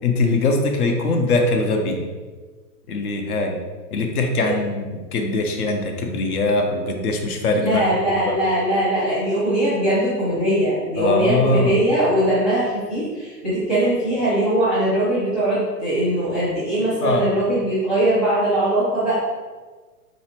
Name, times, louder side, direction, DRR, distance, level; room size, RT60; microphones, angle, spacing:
voice 1, 0.0-2.0 2.9-3.5 3.9-8.4 11.0-11.8 17.0-17.3, left 2 dB, 65° left, 3 dB, 0.7 m, -22 dB
voice 2, 7.6-19.2, right 1 dB, ahead, -10 dB, 0.6 m, -21 dB
4.2 x 2.7 x 2.9 m, 1.4 s
hypercardioid pair, 150°, 49 cm